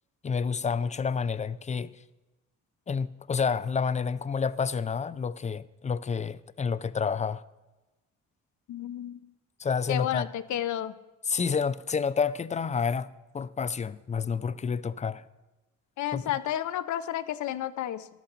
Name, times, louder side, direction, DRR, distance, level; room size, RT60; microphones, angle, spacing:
voice 1, 0.2-1.9 2.9-7.4 9.6-10.3 11.3-13.1 13.3-15.2 16.1-16.3, left 6 dB, 25° left, 0.5 m, -29 dB
voice 2, 8.7-9.2 9.9-10.9 16.0-18.1, left 11 dB, 70° left, 0.7 m, -31 dB
14.5 x 11.5 x 3.9 m
cardioid pair, 90°, 30 cm